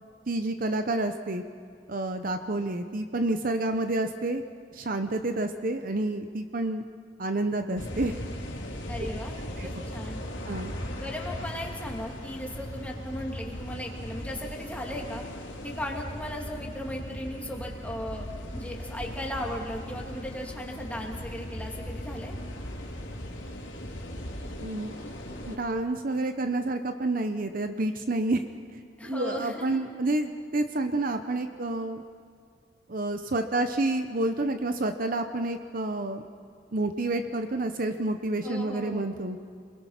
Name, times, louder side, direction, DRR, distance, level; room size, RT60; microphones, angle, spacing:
voice 1, 0.3-1.4 1.9-4.4 4.7-6.8 7.2-8.1 9.6-9.7 10.5-10.7 24.6-24.9 25.5-28.4 29.0-32.0 32.9-36.2 36.7-39.4, right 2 dB, 50° right, 7 dB, 0.9 m, -29 dB
sound 1, 7.7-25.6, equal, 85° left, 3.5 m, -38 dB
voice 2, 8.9-10.2 10.9-15.2 15.6-18.3 18.5-22.3 29.0-29.8 38.4-39.1, equal, 10° left, -1 dB, 2.6 m, -37 dB
28.0 x 22.0 x 5.8 m, 2.2 s
head